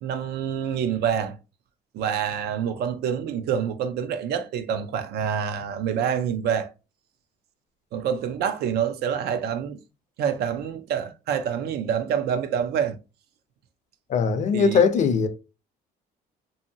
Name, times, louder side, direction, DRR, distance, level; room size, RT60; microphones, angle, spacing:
voice 1, 0.0-1.4 1.9-6.7 7.9-9.8 10.2-13.0 14.5-14.8, right 8 dB, 70° right, 0.5 m, -27 dB
voice 2, 14.1-15.3, left 5 dB, 45° left, 0.5 m, -20 dB
2.7 x 2.7 x 2.6 m
cardioid pair, 110°, 17 cm